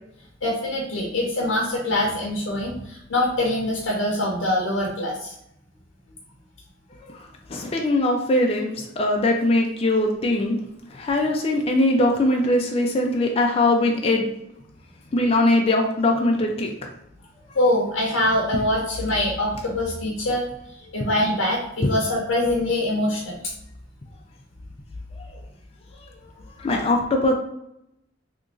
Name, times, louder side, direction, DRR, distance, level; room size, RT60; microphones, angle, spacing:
voice 1, 0.4-5.3 17.5-20.5 20.9-23.4, left 1 dB, 80° left, -2 dB, 0.7 m, -24 dB
voice 2, 7.5-10.6 10.9-14.3 15.1-16.7 26.6-27.3, left 1 dB, 30° left, 1 dB, 0.4 m, -21 dB
2.9 x 2.5 x 3.7 m, 0.78 s
head